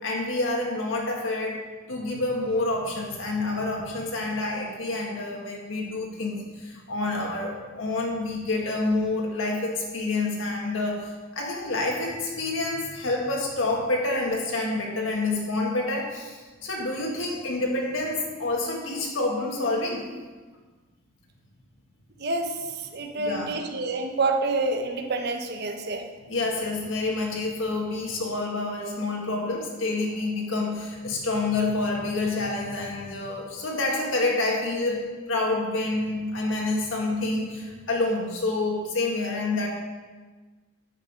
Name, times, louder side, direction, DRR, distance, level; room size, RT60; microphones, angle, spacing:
voice 1, 0.0-1.6 1.9-20.1 23.1-23.5 26.3-39.7, left 2 dB, 80° left, -1 dB, 1.6 m, -28 dB
voice 2, 22.2-22.5 22.9-26.0, right 3 dB, 55° right, 4 dB, 0.9 m, -27 dB
9.4 x 6.6 x 5.1 m, 1.3 s
head